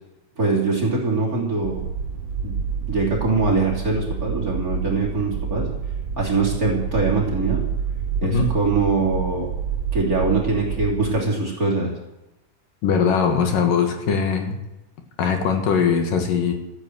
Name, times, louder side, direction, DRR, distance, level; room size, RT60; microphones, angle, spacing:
voice 1, 0.4-1.8 2.4-2.6 2.9-5.7 6.2-7.6 8.2-9.5 9.9-11.9, right 3 dB, 25° right, -1 dB, 3.2 m, -22 dB
sound 1, 1.6-11.2, right 6 dB, 55° right, 2.1 m, -28 dB
voice 2, 8.2-8.5 12.8-14.6 15.2-16.5, left 6 dB, 75° left, 4 dB, 3.2 m, -20 dB
13.5 x 9.8 x 7.8 m, 0.96 s
omnidirectional pair, 4.0 m